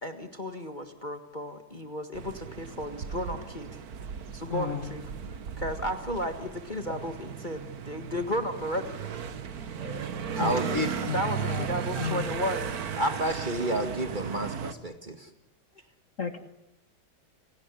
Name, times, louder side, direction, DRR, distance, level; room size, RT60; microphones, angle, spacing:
voice 1, 0.0-3.8 4.3-5.0 5.6-9.0 10.4-10.7 11.1-12.7 13.6-13.8, equal, 25° left, 7 dB, 1.7 m, -34 dB
sound 1, 2.1-14.7, right 7 dB, 50° right, 1.6 m, -36 dB
voice 2, 4.5-4.9 10.4-10.5 11.0-11.7 12.0-12.3 16.2-16.4, left 7 dB, 40° left, 8 dB, 1.9 m, -33 dB
voice 3, 9.7-10.1 10.4-10.9 13.0-15.3, right 1 dB, 25° right, 7 dB, 2.0 m, -30 dB
30.0 x 17.5 x 10.0 m, 0.84 s
omnidirectional pair, 2.1 m